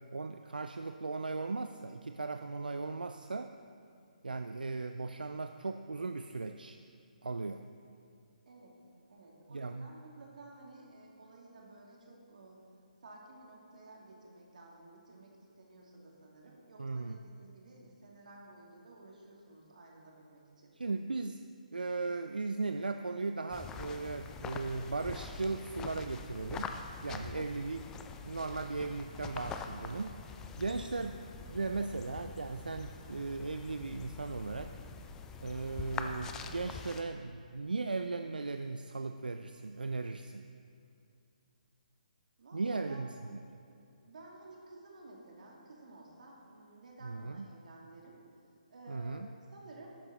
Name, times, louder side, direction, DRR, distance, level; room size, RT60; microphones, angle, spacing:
voice 1, 0.0-3.5 4.2-6.8 7.2-7.6 9.5-9.9 16.8-17.2 20.8-21.4 21.7-26.7 27.0-27.8 28.2-30.2 30.6-31.2 31.5-34.7 35.4-40.4 42.5-43.4 47.0-47.5 48.9-49.3, right 3 dB, 90° right, 8 dB, 0.4 m, -37 dB
voice 2, 8.5-8.8 9.1-12.6 13.0-20.7 27.1-27.5 42.4-43.1 43.6-48.2 48.7-50.0, right 2 dB, 60° right, -1 dB, 2.4 m, -54 dB
sound 1, 23.5-37.0, left 5 dB, 10° left, 0.4 m, -44 dB
12.0 x 8.9 x 4.1 m, 2.5 s
figure-of-eight pair, 145°, 5 cm